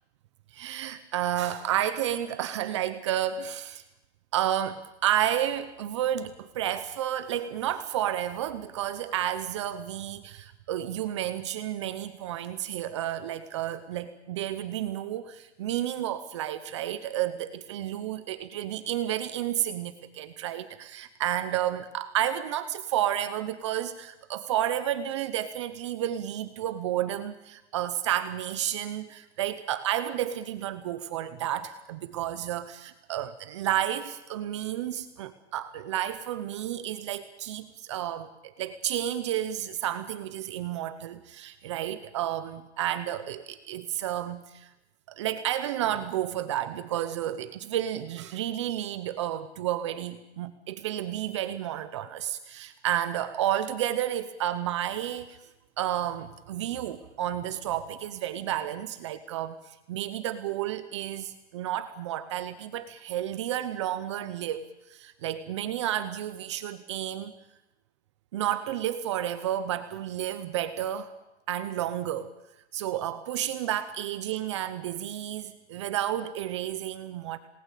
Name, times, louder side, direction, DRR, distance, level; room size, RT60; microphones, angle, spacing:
voice 1, 0.5-3.8 4.3-44.7 45.1-55.4 55.8-67.3 68.3-71.1 71.5-72.3 72.7-77.4, right 11 dB, 25° right, 11 dB, 0.9 m, -31 dB
27.5 x 19.5 x 8.4 m, 0.94 s
hypercardioid pair, 170°, 34 cm